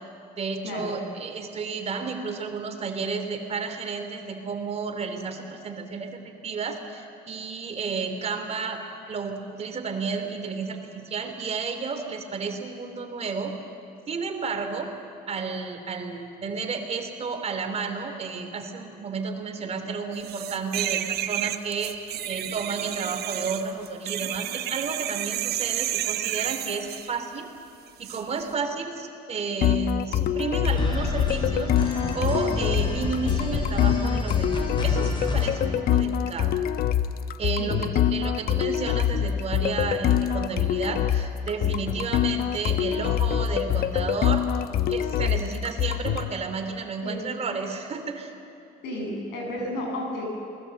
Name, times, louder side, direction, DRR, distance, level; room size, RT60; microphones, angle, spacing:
voice 1, 0.4-8.8 9.1-13.5 14.1-14.9 15.3-27.5 28.0-31.7 32.1-36.5 37.4-44.5 44.9-48.3, right 5 dB, 40° right, 6 dB, 3.0 m, -32 dB
sound 1, 20.2-27.1 28.0-28.2, right 12 dB, 70° right, 1.0 m, -31 dB
sound 2, 29.6-46.3, left 10 dB, 65° left, 0.9 m, -25 dB
sound 3, 30.6-35.7, left 2 dB, 30° left, 4.1 m, -30 dB
voice 2, 48.8-50.3, left 1 dB, 85° left, 0 dB, 7.7 m, -32 dB
28.0 x 20.0 x 7.8 m, 2.5 s
cardioid pair, 110°, 17 cm